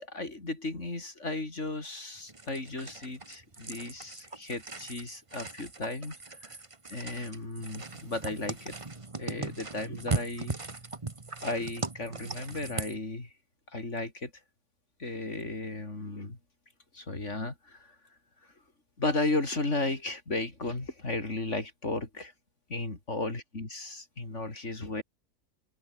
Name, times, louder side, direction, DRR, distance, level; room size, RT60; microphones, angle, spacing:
voice 1, 0.0-6.1 6.4-6.6 6.9-8.7 9.2-10.6 11.4-13.3 13.7-14.3 15.0-16.4 16.9-17.9 19.0-22.3 22.7-25.0, left 2 dB, 50° left, 4.4 m, -34 dB
sound 1, 2.3-13.0, right 3 dB, 20° right, 1.4 m, -39 dB
open air
omnidirectional pair, 1.6 m